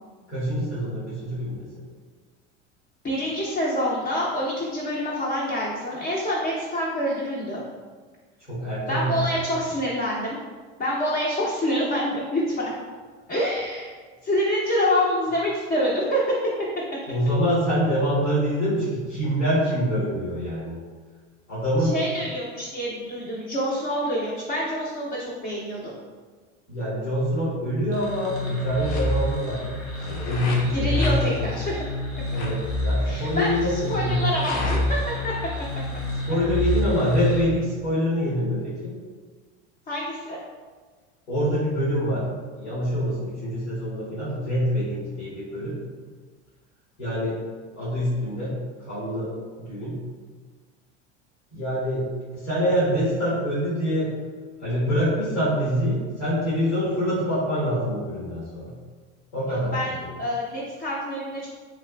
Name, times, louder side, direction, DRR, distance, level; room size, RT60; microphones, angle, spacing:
voice 1, 0.3-1.7 8.5-9.2 17.1-20.8 21.5-22.0 26.7-29.6 30.0-31.5 32.3-34.2 36.2-38.9 41.3-42.3 42.5-45.8 47.0-47.4 47.7-48.5 48.9-49.3 49.6-49.9 51.5-54.1 54.6-58.7 59.3-60.2, equal, 90° left, -12 dB, 1.5 m, -25 dB
voice 2, 3.0-7.6 8.9-10.4 10.8-12.7 13.3-13.9 14.2-16.2 21.8-25.9 30.7-31.6 33.0-35.0 35.2-35.3 39.9-40.4 59.5-59.9 60.2-61.5, equal, 25° left, -5 dB, 0.6 m, -26 dB
sound 1, 27.9-37.4, left 1 dB, 65° left, 0.9 m, -28 dB
3.3 x 2.8 x 2.3 m, 1.4 s
hypercardioid pair, 90°, 35 cm